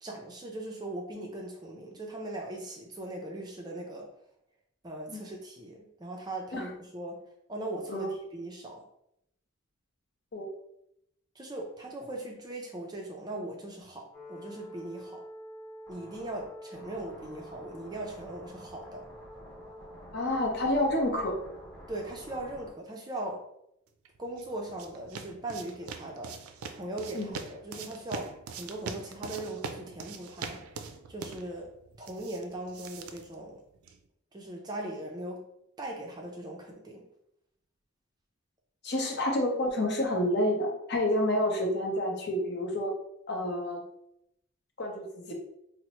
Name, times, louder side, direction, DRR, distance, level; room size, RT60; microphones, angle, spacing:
voice 1, 0.0-4.1 4.8-7.2 7.5-8.8 11.4-15.2 15.9-19.1 21.9-23.4 24.2-30.6 31.1-31.7 32.0-33.6 34.3-35.4 35.8-37.0, right 1 dB, 20° right, 0 dB, 0.4 m, -39 dB
sound 1, 14.1-22.7, equal, 10° left, 0.9 m, -47 dB
voice 2, 20.1-21.4 27.1-27.3 38.8-42.9 43.3-43.8 44.8-45.3, left 1 dB, 50° left, 0 dB, 0.7 m, -29 dB
sound 2, 24.1-34.1, right 5 dB, 90° right, 0.4 m, -43 dB
4.3 x 2.0 x 2.9 m, 0.77 s
head